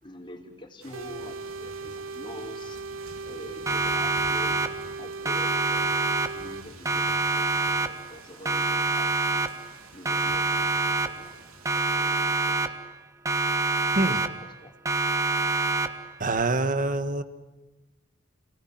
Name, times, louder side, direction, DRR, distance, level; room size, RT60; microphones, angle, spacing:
voice 1, 0.0-2.8 3.2-4.6 5.0-6.0 6.3-9.5 9.9-12.9 14.1-14.3 14.6-14.7, left 1 dB, 25° left, 2 dB, 4.0 m, -46 dB
sound 1, 0.8-12.2, right 2 dB, 90° right, 3.8 m, -49 dB
sound 2, 0.9-6.7, right 3 dB, 65° right, 0.8 m, -38 dB
Siren, 3.7-5.0 5.3-6.6 6.9-8.2 8.5-9.8 10.1-11.4 11.7-13.0 13.3-14.6 14.9-16.2, right 3 dB, 15° right, 1.2 m, -26 dB
voice 2, 16.2-17.2, right 2 dB, 40° right, 11 dB, 1.6 m, -26 dB
28.5 x 19.5 x 9.4 m, 1.1 s
head